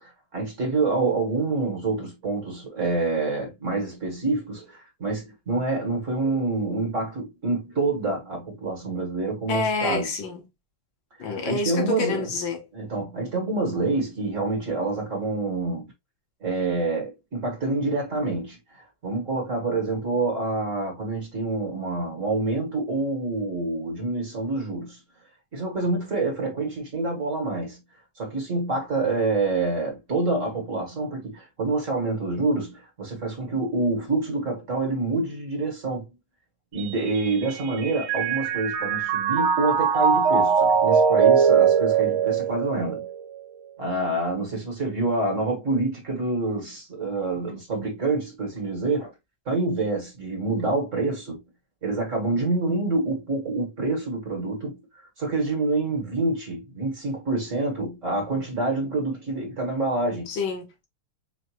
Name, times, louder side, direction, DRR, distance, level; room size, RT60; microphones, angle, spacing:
voice 1, 0.0-10.1 11.2-12.3 12.7-15.9 16.4-25.0 25.5-27.8 28.2-36.1 36.7-43.1 43.8-49.1 49.5-51.4 51.8-54.8 55.2-60.3, right 3 dB, 40° right, 1.9 m, -27 dB
voice 2, 9.5-10.5 11.2-12.6 60.3-60.9, left 4 dB, 70° left, 1.7 m, -28 dB
Mallet percussion, 36.8-43.2, right 7 dB, 85° right, 1.6 m, -21 dB
5.0 x 2.8 x 2.9 m
omnidirectional pair, 2.2 m